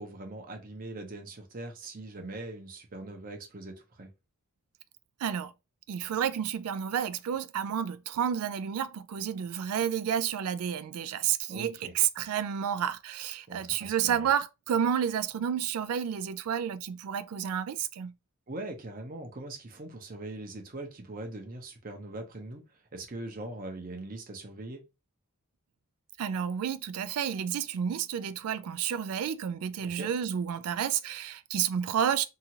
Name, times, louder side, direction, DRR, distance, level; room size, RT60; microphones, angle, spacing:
voice 1, 0.0-4.1 11.5-12.0 13.5-14.3 18.5-24.8 29.8-30.1, right 2 dB, 40° right, 0.6 m, -41 dB
voice 2, 5.2-5.5 5.9-18.1 26.2-32.2, right 8 dB, 80° right, 0.3 m, -30 dB
2.8 x 2.4 x 2.8 m
head